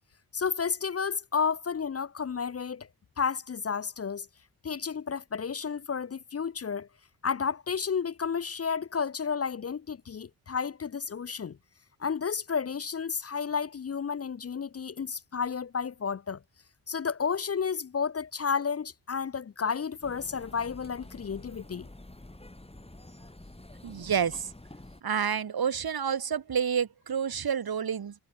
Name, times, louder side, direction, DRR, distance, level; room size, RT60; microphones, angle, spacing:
voice 1, 0.3-2.9 3.2-4.3 4.6-6.9 7.2-11.6 12.0-16.4 16.9-21.9, left 6 dB, 35° left, 0.6 m, -31 dB
sound 1, 20.0-25.0, left 1 dB, 15° left, 4.0 m, -48 dB
voice 2, 23.8-24.5 25.0-28.1, right 7 dB, 65° right, 2.0 m, -29 dB
cardioid pair, 55°, 40 cm